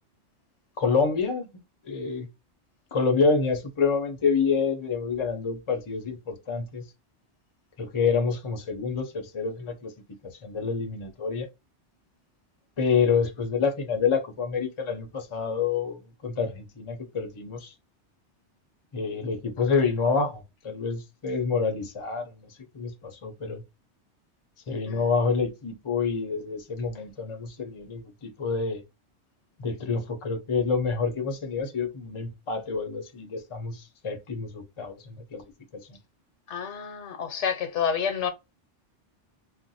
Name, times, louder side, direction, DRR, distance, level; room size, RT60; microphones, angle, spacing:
voice 1, 0.8-1.5 1.8-2.3 2.9-6.8 7.8-9.9 10.4-11.5 12.8-17.7 18.9-22.5 22.7-23.6 24.7-28.8 29.6-35.4, left 5 dB, 35° left, 0.6 m, -27 dB
voice 2, 36.5-38.3, left 7 dB, 85° left, 1.1 m, -29 dB
2.5 x 2.1 x 4.0 m
omnidirectional pair, 1.2 m